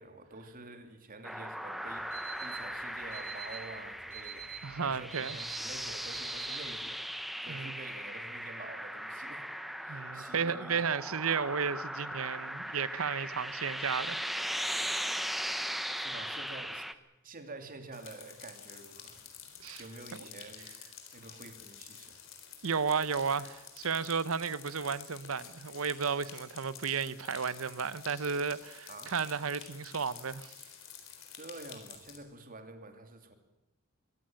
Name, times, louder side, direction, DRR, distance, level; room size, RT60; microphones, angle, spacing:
voice 1, 0.0-7.1 7.4-9.5 9.8-10.8 15.9-16.8 17.2-19.2 19.8-20.7 21.1-22.2 28.9-29.2 31.3-33.3, right 2 dB, 45° right, 2.9 m, -48 dB
sound 1, 1.2-16.9, equal, ahead, 0.9 m, -38 dB
Alarm, 1.9-6.9, right 11 dB, 65° right, 7.0 m, -47 dB
voice 2, 4.6-5.4 7.5-7.7 9.9-14.6 19.6-19.8 22.6-30.5, right 6 dB, 80° right, 0.9 m, -33 dB
sound 2, 17.9-32.2, left 8 dB, 65° left, 4.1 m, -50 dB
23.0 x 17.0 x 8.9 m
head